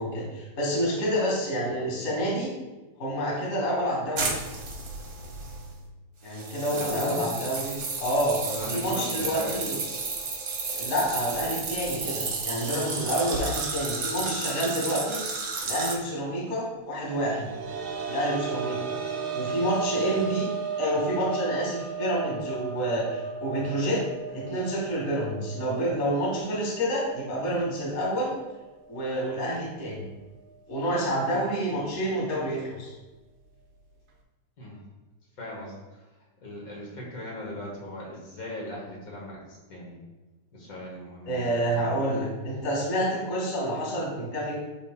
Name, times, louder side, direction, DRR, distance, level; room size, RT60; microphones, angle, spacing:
voice 1, 0.0-2.5 3.0-4.4 6.2-8.4 8.7-9.8 10.7-15.2 15.6-17.5 18.1-18.8 19.3-20.5 20.8-24.0 24.3-28.3 28.9-30.0 30.7-32.9 41.2-44.5, equal, 25° left, -5 dB, 1.8 m, -28 dB
sound 1, 4.2-5.8 6.3-16.0, right 4 dB, 50° right, 1.5 m, -32 dB
voice 2, 6.7-7.3 8.4-9.8 19.9-20.1 34.6-34.8 35.4-36.1 36.4-40.0 40.5-41.9, left 1 dB, 45° left, -2 dB, 1.2 m, -38 dB
sound 2, 17.0-28.5 28.8-28.9 30.5-30.6, right 5 dB, 70° right, 1.4 m, -35 dB
11.0 x 4.1 x 2.2 m, 1.2 s
omnidirectional pair, 3.4 m